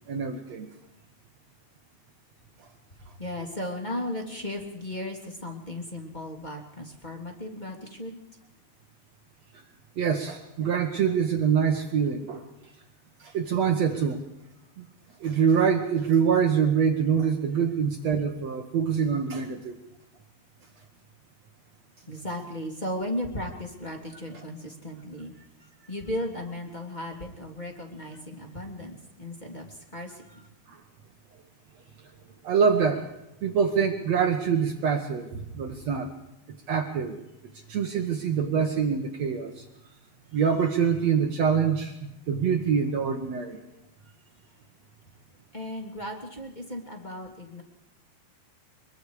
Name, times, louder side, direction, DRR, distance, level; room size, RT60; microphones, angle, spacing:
voice 1, 0.1-0.7 10.0-12.4 13.2-14.2 14.8-14.9 15.2-19.8 30.7-30.8 32.4-33.1 33.4-36.1 36.7-37.2 37.7-39.6 40.3-43.6, right 7 dB, 70° right, 4 dB, 1.6 m, -25 dB
voice 2, 3.2-8.2 22.1-25.3 25.9-30.4 45.5-47.6, left 1 dB, 10° left, 2 dB, 2.4 m, -36 dB
23.5 x 23.0 x 5.0 m, 0.90 s
omnidirectional pair, 5.0 m